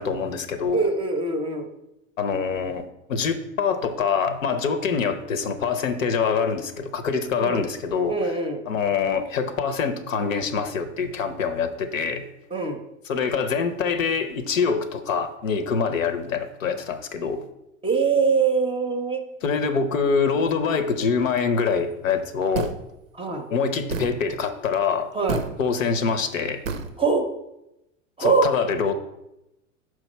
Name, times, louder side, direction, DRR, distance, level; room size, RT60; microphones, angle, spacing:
voice 1, 0.0-0.8 2.2-8.2 8.7-12.3 13.1-17.4 19.4-22.7 23.5-25.1 25.6-26.6 28.2-28.9, left 5 dB, 80° left, 10 dB, 0.8 m, -25 dB
voice 2, 0.7-1.7 7.4-7.7 8.1-8.6 12.5-12.8 17.8-19.2 23.1-23.5 25.1-25.4 27.0-27.2 28.2-28.5, right 4 dB, 15° right, 7 dB, 0.6 m, -23 dB
sound 1, 22.5-22.9 23.9-24.2 25.3-25.5 26.6-26.9, right 4 dB, 85° right, 0.6 m, -28 dB
6.3 x 4.7 x 4.2 m, 0.90 s
hypercardioid pair, 85°, 39 cm